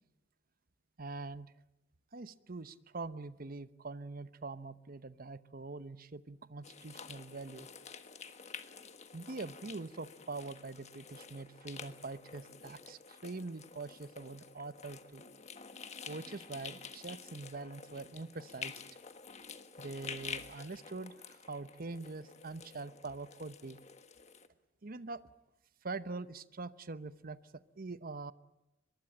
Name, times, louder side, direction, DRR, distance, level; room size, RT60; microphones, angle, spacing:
voice 1, 1.0-1.5 2.1-7.7 9.1-15.2 16.1-18.7 19.8-23.8 24.8-25.3 25.8-28.3, right 3 dB, 50° right, 14 dB, 0.9 m, -44 dB
sound 1, 6.6-24.5, left 6 dB, 40° left, 1.4 m, -49 dB
23.5 x 21.5 x 8.7 m, 0.94 s
head